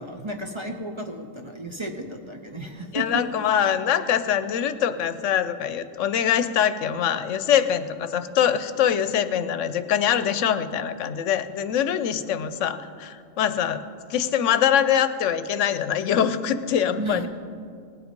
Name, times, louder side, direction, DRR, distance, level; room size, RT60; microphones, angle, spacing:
voice 1, 0.0-3.2 16.9-17.3, right 1 dB, 30° right, 4 dB, 0.6 m, -33 dB
voice 2, 2.9-13.8 14.1-17.3, left 9 dB, 80° left, 11 dB, 1.0 m, -23 dB
19.0 x 8.0 x 5.2 m, 2.3 s
omnidirectional pair, 1.3 m